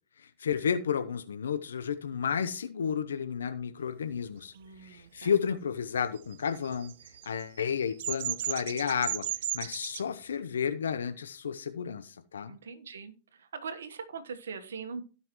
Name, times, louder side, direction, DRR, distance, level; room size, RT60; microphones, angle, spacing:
voice 1, 0.2-4.5 4.8-6.9 7.3-9.2 9.5-12.6, left 7 dB, 90° left, 11 dB, 0.7 m, -32 dB
voice 2, 4.5-5.3 12.5-13.1 13.4-15.0, right 5 dB, 85° right, 9 dB, 1.3 m, -41 dB
Bird vocalization bird call bird song, 6.3-10.0, right 12 dB, 70° right, 0.4 m, -34 dB
16.5 x 5.6 x 3.1 m, 0.36 s
hypercardioid pair, 110°, 0 cm